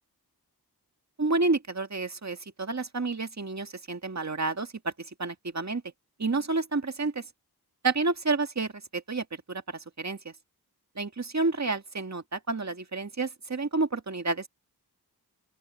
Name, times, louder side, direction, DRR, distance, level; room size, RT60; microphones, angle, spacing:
voice 1, 1.2-5.8 6.2-7.3 7.8-10.3 11.0-14.5, right 3 dB, 45° right, 1.8 m, -30 dB
open air
wide cardioid pair, 40°, 39 cm